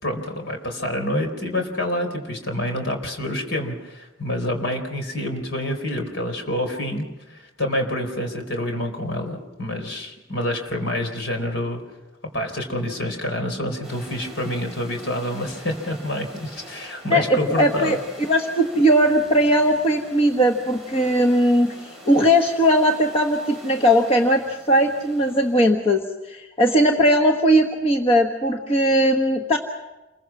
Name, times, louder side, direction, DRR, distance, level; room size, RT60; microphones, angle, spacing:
voice 1, 0.0-11.8 12.3-18.0, left 1 dB, 60° left, 4 dB, 4.2 m, -27 dB
sound 1, 13.8-25.8, right 1 dB, ahead, 7.9 m, -44 dB
voice 2, 17.1-18.0 18.3-29.6, equal, 30° left, 3 dB, 1.3 m, -19 dB
28.5 x 22.5 x 6.1 m, 1.1 s
head